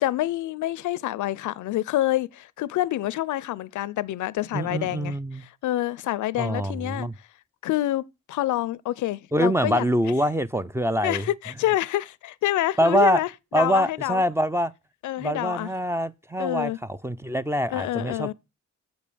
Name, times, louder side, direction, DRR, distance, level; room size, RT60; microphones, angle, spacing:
voice 1, 0.0-5.1 5.4-7.3 7.6-9.8 11.0-14.2 15.0-15.7 16.4-16.8 17.7-18.3, left 15 dB, 80° left, 0.5 m, -27 dB
voice 2, 4.5-5.4 6.4-7.1 9.3-11.2 12.8-13.2 13.5-14.7 15.2-18.3, equal, 10° right, 0.4 m, -24 dB
6.9 x 5.2 x 6.8 m
cardioid pair, 80°, 30 cm